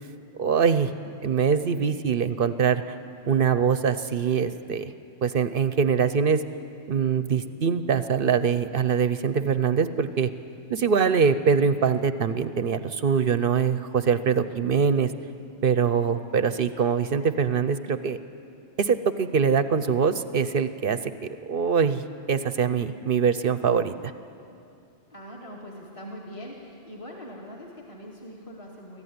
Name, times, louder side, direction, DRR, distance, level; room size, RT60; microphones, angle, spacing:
voice 1, 0.4-0.9 1.2-2.9 3.3-4.9 5.2-6.4 6.9-10.3 10.7-15.1 15.6-18.2 18.8-21.1 21.4-22.0 22.3-24.1, right 6 dB, 55° right, 12 dB, 0.8 m, -23 dB
voice 2, 10.1-10.7 25.1-29.0, equal, 25° left, -3 dB, 2.3 m, -42 dB
24.5 x 15.0 x 9.5 m, 2.6 s
omnidirectional pair, 1.2 m